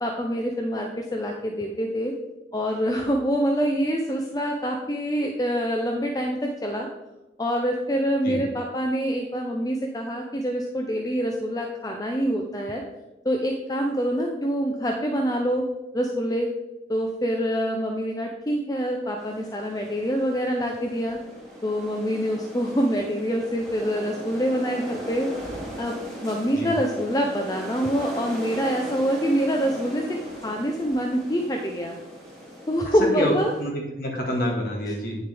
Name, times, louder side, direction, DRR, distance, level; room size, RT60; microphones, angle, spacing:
voice 1, 0.0-2.1 2.5-6.9 7.4-12.8 13.2-15.7 15.9-16.5 16.9-21.2 21.6-25.3 25.8-32.0 32.7-33.5, equal, 20° left, 1 dB, 0.6 m, -26 dB
sound 1, 19.2-33.6, equal, 5° left, 2.5 m, -39 dB
voice 2, 32.8-33.3 33.6-35.2, equal, 50° left, -1 dB, 1.9 m, -27 dB
9.2 x 6.8 x 3.5 m, 1.0 s
head